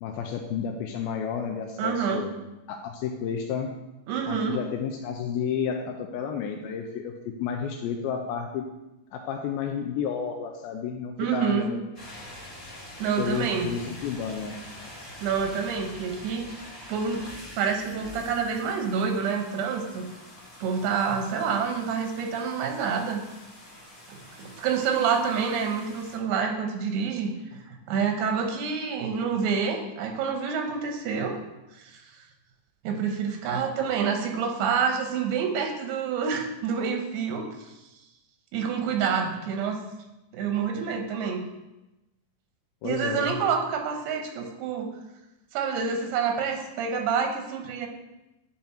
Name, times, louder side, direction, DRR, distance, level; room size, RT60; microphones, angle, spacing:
voice 1, 0.0-2.4 2.7-3.7 4.3-8.7 9.1-11.8 13.2-14.6 42.8-43.4, left 7 dB, 80° left, 3 dB, 2.3 m, -31 dB
voice 2, 1.8-2.3 4.1-4.6 11.2-11.7 13.0-13.7 15.2-16.5 16.9-17.2 17.6-20.1 20.6-23.2 24.1-31.4 31.8-32.0 32.8-37.5 38.5-39.8 40.3-41.4 42.8-44.9 45.5-47.9, right 6 dB, 90° right, 4 dB, 3.0 m, -27 dB
sound 1, 11.9-26.2, left 1 dB, 40° left, 0.9 m, -45 dB
10.0 x 4.0 x 4.3 m, 0.97 s
omnidirectional pair, 4.5 m